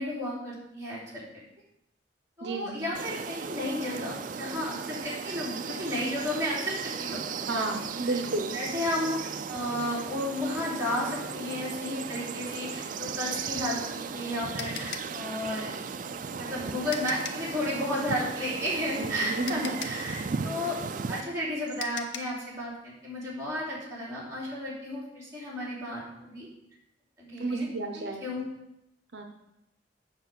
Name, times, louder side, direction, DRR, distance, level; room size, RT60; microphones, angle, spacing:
voice 1, 0.0-1.4 2.4-8.1 8.5-9.2 9.5-15.8 16.4-20.8 21.1-26.5 27.2-27.7 27.9-28.4, left 1 dB, 20° right, -7 dB, 3.5 m, -33 dB
voice 2, 2.4-2.9 7.5-8.6 19.0-19.8 27.4-28.2 29.1-29.2, right 2 dB, 65° right, 4 dB, 0.8 m, -32 dB
sound 1, 3.0-21.2, right 5 dB, 45° right, 0.4 m, -36 dB
sound 2, 14.0-17.5 18.9-19.0 19.5-22.4, left 6 dB, 85° left, 0.7 m, -40 dB
8.0 x 5.0 x 7.0 m, 0.86 s
head